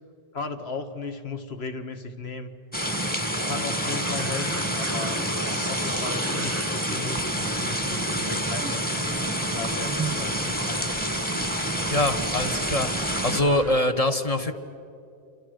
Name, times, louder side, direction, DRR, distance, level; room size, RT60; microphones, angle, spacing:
voice 1, 0.3-2.6 3.5-5.2 5.5-9.1 9.5-11.1, left 4 dB, 65° left, 7 dB, 1.7 m, -36 dB
sound 1, 2.7-13.4, right 1 dB, 10° left, 1.5 m, -28 dB
sound 2, 3.3-13.8, right 3 dB, 15° right, 0.9 m, -38 dB
voice 2, 11.9-14.5, left 1 dB, 35° left, 6 dB, 1.2 m, -24 dB
28.5 x 26.0 x 6.5 m, 2.7 s
omnidirectional pair, 1.2 m